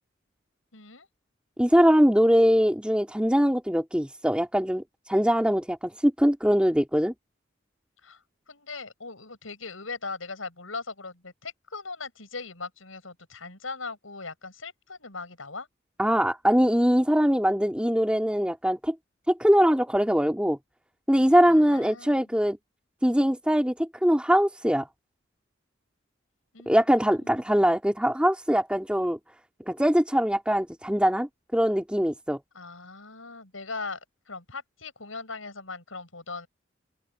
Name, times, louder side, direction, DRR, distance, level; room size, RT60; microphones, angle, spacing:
voice 1, 0.7-1.1 8.0-8.2 8.5-15.7 21.5-22.3 26.5-27.4 32.5-34.0 34.3-36.5, left 4 dB, 85° left, 7.1 m, -39 dB
voice 2, 1.6-7.1 16.0-18.9 19.3-20.6 21.1-22.6 23.0-24.9 26.7-29.2 29.7-32.4, equal, 5° right, 3.1 m, -22 dB
head